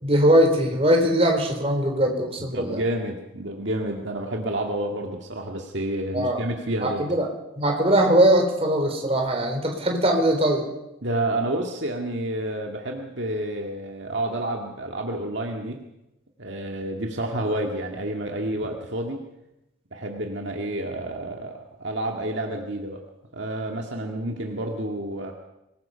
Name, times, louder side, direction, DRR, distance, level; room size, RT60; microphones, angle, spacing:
voice 1, 0.0-2.8 6.1-6.4 6.8-7.3 7.6-10.7, right 1 dB, 30° right, 2 dB, 4.1 m, -21 dB
voice 2, 2.5-7.1 11.0-15.8 16.4-19.2 19.9-23.0 23.3-25.3, right 1 dB, 60° right, 2 dB, 2.0 m, -29 dB
25.5 x 20.5 x 5.7 m, 0.90 s
head